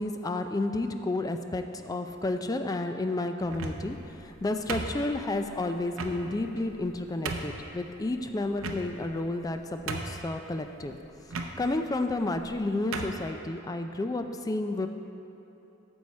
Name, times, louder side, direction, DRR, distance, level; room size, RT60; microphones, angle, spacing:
voice 1, 0.0-11.0 11.6-14.9, left 2 dB, 20° left, 7 dB, 0.3 m, -31 dB
sound 1, 3.4-4.0 4.7-5.4 6.0-6.2 6.8-6.9 7.2-7.6 8.6-9.1 9.5-9.6 9.9-10.3 11.3-11.5 12.4-12.5 12.9-13.2, right 3 dB, 80° right, 0.6 m, -35 dB
9.0 x 7.1 x 4.2 m, 2.9 s
head